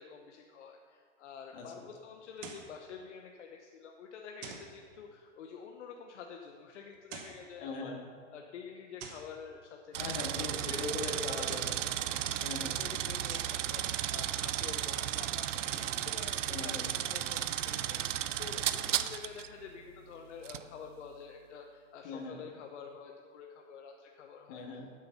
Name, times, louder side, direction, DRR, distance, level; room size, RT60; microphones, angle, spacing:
voice 1, 0.0-8.0 8.3-10.9 12.0-24.6, left 6 dB, 65° left, 3 dB, 1.0 m, -48 dB
voice 2, 1.5-1.9 7.6-8.1 10.0-11.9 12.4-12.8 16.5-16.9 22.0-22.4 24.5-24.9, left 3 dB, 45° left, 0 dB, 2.3 m, -40 dB
sound 1, 2.4-2.8 4.4-4.8 6.9-7.5 9.0-9.4 11.3-11.8 13.3-13.6 15.5-16.0, right 6 dB, 25° right, 0.9 m, -47 dB
sound 2, 9.9-16.1, right 5 dB, 55° right, 1.3 m, -55 dB
sound 3, 9.9-19.5 20.4-20.6, right 11 dB, 75° right, 0.7 m, -34 dB
12.5 x 7.7 x 5.5 m, 2.2 s
hypercardioid pair, 160°, 37 cm